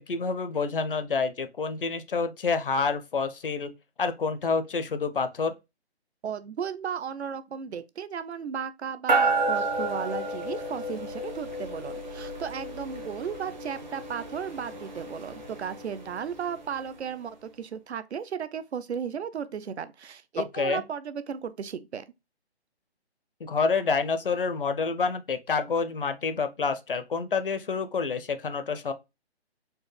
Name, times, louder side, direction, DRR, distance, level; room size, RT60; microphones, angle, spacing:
voice 1, 0.0-3.7 4.0-5.5 20.5-20.8 23.4-28.9, left 4 dB, 55° left, 0.5 m, -28 dB
voice 2, 6.2-22.0, right 7 dB, 75° right, 0.6 m, -35 dB
sound 1, 9.1-16.8, right 2 dB, 45° right, 0.8 m, -31 dB
4.4 x 2.1 x 3.2 m
hypercardioid pair, 175°, 33 cm